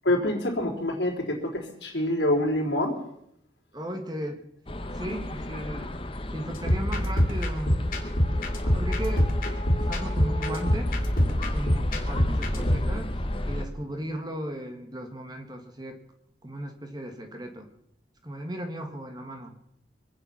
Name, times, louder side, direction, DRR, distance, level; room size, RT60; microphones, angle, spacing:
voice 1, 0.0-3.0, left 1 dB, 80° left, 0 dB, 4.0 m, -26 dB
voice 2, 3.7-4.4 4.9-5.9 6.3-7.8 8.6-9.3 9.8-10.9 11.5-13.1 13.5-16.0 16.4-17.7 18.2-19.5, right 1 dB, 25° right, 5 dB, 1.7 m, -36 dB
sound 1, 4.7-13.7, left 1 dB, 30° left, 1.2 m, -33 dB
sound 2, 6.5-12.9, equal, 50° left, 3.0 m, -26 dB
25.0 x 9.1 x 5.9 m, 0.76 s
head